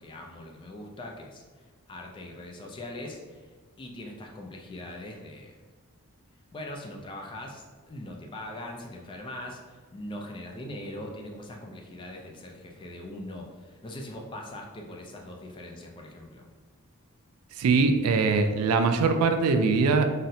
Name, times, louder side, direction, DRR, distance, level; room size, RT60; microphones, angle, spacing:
voice 1, 0.0-1.4 1.9-3.5 3.8-5.6 6.5-16.5, left 1 dB, 20° left, 1 dB, 0.3 m, -41 dB
voice 2, 17.6-20.1, right 4 dB, 80° right, 8 dB, 0.3 m, -22 dB
3.9 x 2.1 x 2.7 m, 1.4 s
head